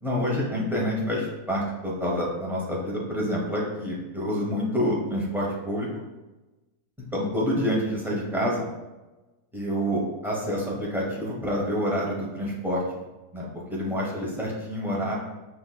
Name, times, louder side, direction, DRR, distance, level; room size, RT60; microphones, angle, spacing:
voice 1, 0.0-5.9 7.1-8.7 9.5-12.8 13.3-15.1, equal, 5° right, -4 dB, 0.4 m, -27 dB
5.6 x 3.3 x 2.2 m, 1.1 s
omnidirectional pair, 1.6 m